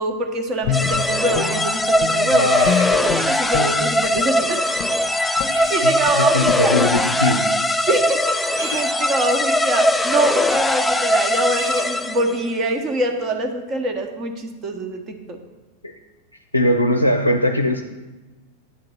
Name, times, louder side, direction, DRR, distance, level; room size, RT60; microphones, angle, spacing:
voice 1, 0.0-2.5 3.0-4.6 5.4-6.8 7.9-8.2 8.6-15.4, right 2 dB, 30° right, 4 dB, 1.1 m, -24 dB
Guitar, 0.6-2.3 2.6-4.4 4.8-5.0 5.4-5.7 6.0-6.2 6.4-6.6 6.9-7.1, left 7 dB, 40° left, 0.7 m, -26 dB
sound 1, 0.7-12.4, left 1 dB, 5° left, 0.4 m, -20 dB
voice 2, 2.3-2.7 5.8-7.5 15.8-15.9 16.5-17.8, left 1 dB, 85° left, 5 dB, 0.5 m, -20 dB
Drill, 2.6-2.9 5.5-5.9 8.6-8.9 11.6-11.9, right 3 dB, 75° right, 0.5 m, -34 dB
9.4 x 3.8 x 6.2 m, 1.1 s
figure-of-eight pair, 90°, 0 cm